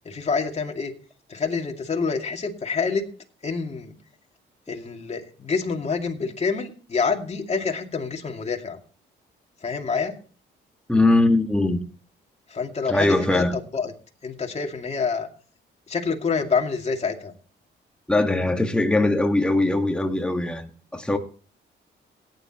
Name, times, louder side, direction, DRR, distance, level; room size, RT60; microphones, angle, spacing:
voice 1, 0.0-0.9 1.3-3.0 3.4-3.9 4.7-8.8 9.6-10.1 12.5-13.9 14.2-15.3 15.9-17.3, left 5 dB, 35° left, 2.4 m, -27 dB
voice 2, 10.9-11.8 12.9-13.6 18.1-21.2, left 2 dB, 5° left, 1.8 m, -21 dB
17.0 x 10.0 x 3.0 m
cardioid pair, 90°, 20 cm